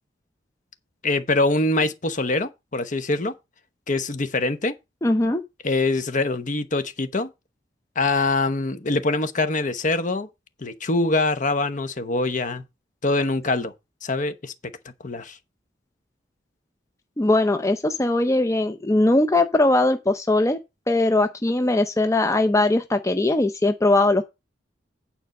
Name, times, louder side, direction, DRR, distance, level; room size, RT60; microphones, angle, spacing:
voice 1, 1.0-3.3 3.9-4.7 5.6-7.3 8.0-10.3 10.6-12.6 13.0-13.7 14.0-14.5 15.0-15.4, left 2 dB, 45° left, 1.0 m, -24 dB
voice 2, 5.0-5.4 17.2-20.6 20.9-24.2, left 2 dB, 15° left, 0.6 m, -20 dB
9.2 x 4.4 x 6.6 m
head